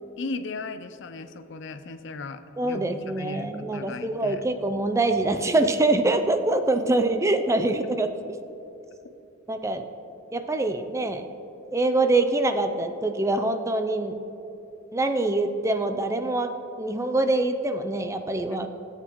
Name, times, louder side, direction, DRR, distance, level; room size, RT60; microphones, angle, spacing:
voice 1, 0.2-4.4 18.5-18.7, left 3 dB, 65° left, 10 dB, 0.5 m, -37 dB
voice 2, 2.6-8.1 9.5-9.8 10.3-11.3 11.7-14.1 14.9-16.5 16.8-18.7, right 2 dB, 15° right, 8 dB, 0.4 m, -24 dB
16.0 x 8.1 x 3.0 m, 2.9 s
head